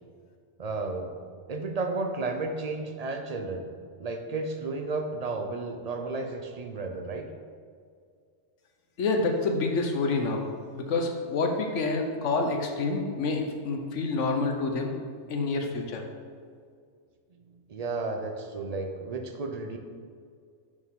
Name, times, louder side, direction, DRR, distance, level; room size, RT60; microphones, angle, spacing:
voice 1, 0.6-1.1 1.5-3.7 4.0-7.3 17.3-17.4 17.7-19.8, right 3 dB, 45° right, 4 dB, 0.5 m, -33 dB
voice 2, 9.0-10.4 10.7-14.9 15.3-16.0, left 3 dB, 75° left, 3 dB, 1.2 m, -28 dB
6.5 x 6.5 x 3.6 m, 2.1 s
omnidirectional pair, 1.3 m